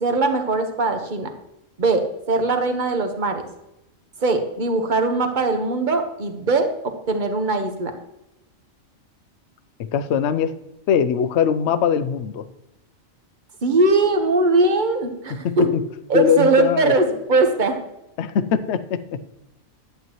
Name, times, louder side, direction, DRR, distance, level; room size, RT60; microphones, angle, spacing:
voice 1, 0.0-1.3 1.8-3.4 4.2-6.7 7.1-7.9 13.6-15.7 16.1-17.8, right 3 dB, 40° right, 6 dB, 1.2 m, -20 dB
voice 2, 9.9-10.5 10.9-12.4 15.3-15.8 16.1-16.9 18.2-19.2, left 7 dB, 65° left, 12 dB, 0.9 m, -21 dB
11.0 x 9.2 x 3.0 m, 0.91 s
omnidirectional pair, 1.4 m